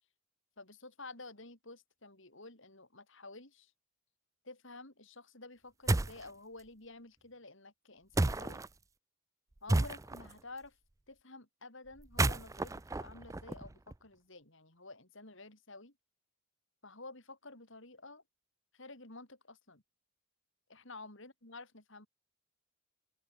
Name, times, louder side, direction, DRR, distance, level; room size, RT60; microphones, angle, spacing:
voice 1, 0.6-3.7 4.4-8.6 9.6-10.8 11.1-15.9 16.8-18.2 18.7-19.8 20.7-22.1, left 2 dB, 55° left, 4.1 m, -51 dB
sound 1, 5.9-6.3 8.2-8.7 9.7-10.3 12.0-13.9, right 2 dB, 15° right, 0.4 m, -32 dB
open air
head